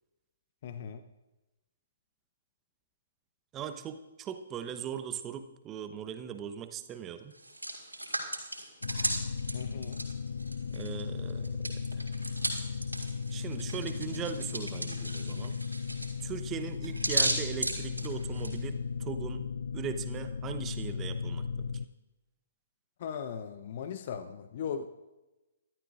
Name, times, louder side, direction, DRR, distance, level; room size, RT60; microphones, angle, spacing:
voice 1, 0.6-1.0 9.5-10.0 23.0-24.9, left 7 dB, 45° left, 10 dB, 0.8 m, -38 dB
voice 2, 3.5-7.3 10.7-12.0 13.3-15.6 16.2-19.4 19.7-21.7, right 8 dB, 20° right, 7 dB, 1.0 m, -39 dB
Hands, 7.3-11.0 11.3-18.6, right 1 dB, 85° right, 3.8 m, -35 dB
sound 1, 8.8-21.9, left 5 dB, 65° left, 0.5 m, -36 dB
24.0 x 13.5 x 2.5 m, 1.0 s
figure-of-eight pair, 125°, 0 cm